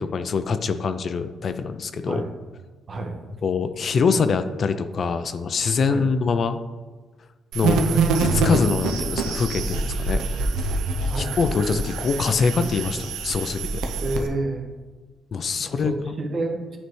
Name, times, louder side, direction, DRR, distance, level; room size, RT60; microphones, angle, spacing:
voice 1, 0.1-2.2 3.4-6.6 7.5-10.2 10.6-10.7 11.2-13.8 15.3-15.9, left 5 dB, 50° left, 10 dB, 0.3 m, -24 dB
sound 1, 7.5-14.3, right 3 dB, 85° right, 0.6 m, -25 dB
voice 2, 14.0-14.7 15.7-16.8, right 2 dB, 45° right, 3 dB, 0.9 m, -29 dB
9.3 x 3.2 x 3.1 m, 1.3 s
cardioid pair, 90°, 0 cm